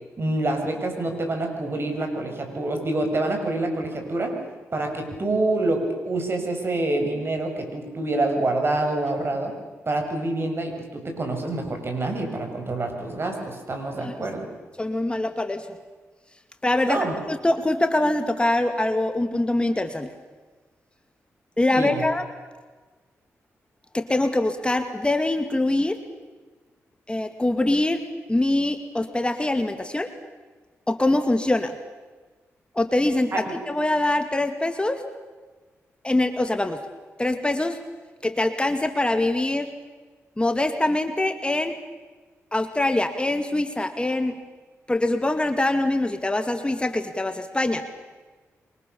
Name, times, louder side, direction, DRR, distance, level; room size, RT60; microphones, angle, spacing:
voice 1, 0.2-4.3 4.7-9.5 9.9-14.5 16.9-17.2 21.7-22.0 33.3-33.6, right 2 dB, 45° right, 4 dB, 7.3 m, -26 dB
voice 2, 14.8-15.7 16.6-20.1 21.6-22.2 23.9-26.0 27.1-28.0 28.3-30.1 30.9-31.8 32.7-35.0 36.0-36.8 37.2-37.8 38.2-39.7 40.4-41.7 42.5-44.4 44.9-47.9, left 2 dB, 20° left, 7 dB, 2.3 m, -24 dB
28.0 x 24.0 x 7.1 m, 1.3 s
cardioid pair, 55°, 6 cm